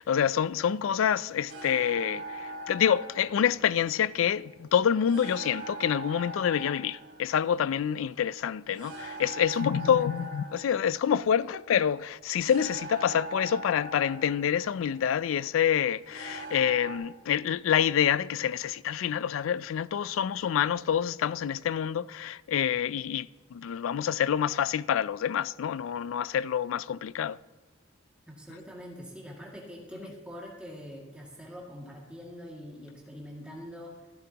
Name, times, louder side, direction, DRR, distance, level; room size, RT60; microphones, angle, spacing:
voice 1, 0.0-27.4, left 8 dB, 85° left, 0.3 m, -27 dB
sound 1, 1.5-17.0, right 2 dB, 65° right, 2.8 m, -42 dB
voice 2, 9.6-10.3 28.3-33.9, equal, 5° right, 2.1 m, -44 dB
15.0 x 11.5 x 2.9 m
head